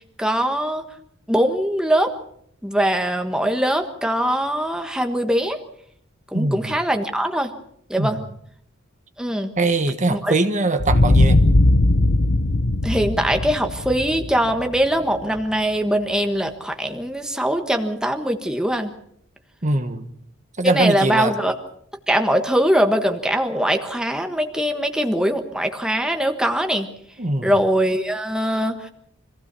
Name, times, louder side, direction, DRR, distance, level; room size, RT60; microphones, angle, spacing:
voice 1, 0.2-0.8 1.3-2.1 2.6-5.6 6.3-7.5 7.9-8.2 9.2-9.5 10.1-10.3 12.8-18.9 20.6-21.5 22.1-26.9 27.4-28.9, equal, 5° right, 1.4 m, -22 dB
voice 2, 6.3-6.7 8.0-8.2 9.6-11.4 19.6-20.1 20.6-21.3 27.2-27.6, right 2 dB, 35° right, 1.4 m, -22 dB
sound 1, 10.8-15.4, left 2 dB, 65° left, 0.9 m, -18 dB
25.5 x 16.0 x 6.9 m
head